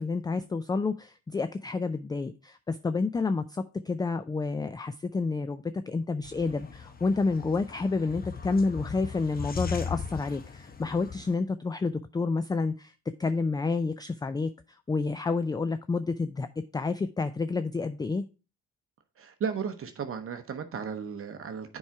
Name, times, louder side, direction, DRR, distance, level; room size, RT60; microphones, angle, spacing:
voice 1, 0.0-12.9 13.2-14.5 14.9-16.5 16.7-18.2, left 4 dB, 15° left, 12 dB, 0.3 m, -29 dB
sound 1, 6.2-11.3, left 6 dB, 30° left, 0.9 m, -39 dB
voice 2, 19.2-21.8, right 6 dB, 45° right, 7 dB, 0.8 m, -35 dB
7.1 x 4.8 x 4.5 m, 0.33 s
cardioid pair, 90°, 30 cm